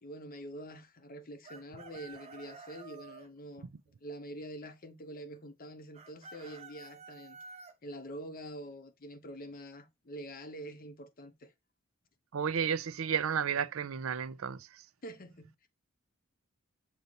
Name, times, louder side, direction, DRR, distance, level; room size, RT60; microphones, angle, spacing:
voice 1, 0.0-3.7 4.0-7.4 7.8-11.5 15.0-15.7, right 1 dB, 45° left, 0.9 m, -46 dB
Chicken rooster, 1.4-3.3 5.9-7.7, right 4 dB, 30° right, 0.8 m, -50 dB
voice 2, 12.3-14.6, right 7 dB, 75° right, 0.5 m, -32 dB
6.8 x 3.0 x 5.2 m
head